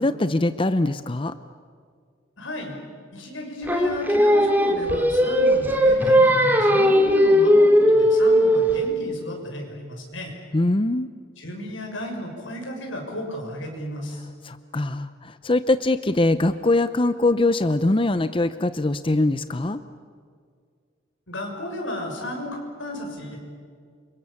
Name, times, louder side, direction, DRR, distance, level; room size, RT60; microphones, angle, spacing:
voice 1, 0.0-1.4 10.5-11.1 14.4-19.8, left 2 dB, 25° left, 12 dB, 0.6 m, -22 dB
voice 2, 2.4-2.8 3.1-10.4 11.4-14.3 21.3-23.4, left 1 dB, 90° left, 2 dB, 6.5 m, -34 dB
Singing, 3.7-8.9, equal, 10° right, 2.5 m, -17 dB
29.0 x 25.0 x 7.2 m, 2.1 s
head